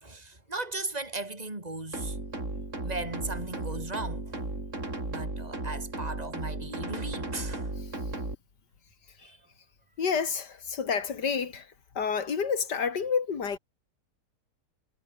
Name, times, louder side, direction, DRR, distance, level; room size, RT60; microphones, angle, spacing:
voice 1, 0.0-2.2 2.8-4.4 5.1-7.7 9.2-9.4, right 2 dB, 25° right, 4.3 m, -37 dB
Hardstyle kick, 1.9-8.4, right 2 dB, 45° right, 5.8 m, -35 dB
voice 2, 10.0-13.6, left 6 dB, 90° left, 2.7 m, -29 dB
omnidirectional pair, 1.8 m